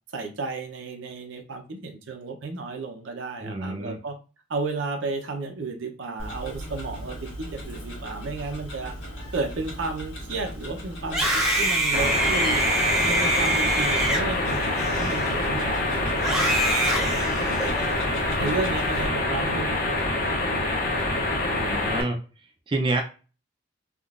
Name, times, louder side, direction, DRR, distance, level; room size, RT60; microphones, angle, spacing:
voice 1, 0.1-4.2 4.5-8.9 9.3-11.3 11.6-12.6 13.0-18.1 18.4-21.2, right 3 dB, 80° right, 5 dB, 0.6 m, -33 dB
voice 2, 3.4-4.0 18.4-18.5 21.6-22.2 22.7-23.0, right 2 dB, 25° right, 2 dB, 0.4 m, -28 dB
Tick-tock, 6.2-19.1, equal, 90° left, 1.4 m, -38 dB
Screaming, 11.0-15.5 16.2-17.9, right 1 dB, ahead, 0.7 m, -25 dB
sound 1, 11.9-22.0, left 2 dB, 45° left, 0.6 m, -26 dB
3.6 x 2.3 x 2.4 m, 0.34 s
head